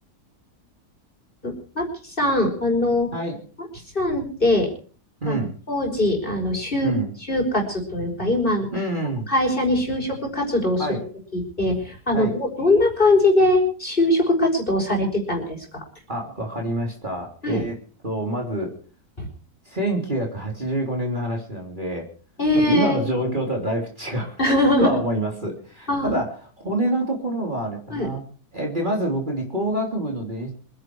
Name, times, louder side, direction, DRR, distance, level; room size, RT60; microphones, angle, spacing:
voice 1, 1.4-3.1 3.9-4.7 5.2-5.4 5.7-6.9 7.3-8.7 9.3-11.0 11.3-15.8 17.4-17.7 19.2-19.3 22.4-23.3 24.4-24.9 25.9-26.1 27.9-28.1, left 1 dB, 30° left, 2 dB, 5.5 m, -21 dB
voice 2, 5.2-5.6 6.8-7.1 8.7-9.3 10.8-11.0 12.1-12.4 16.1-17.8 18.0-18.7 19.7-22.1 22.5-24.4 24.8-28.2 28.5-30.5, right 1 dB, 30° right, 0 dB, 3.7 m, -26 dB
26.0 x 10.0 x 4.7 m, 0.42 s
omnidirectional pair, 1.7 m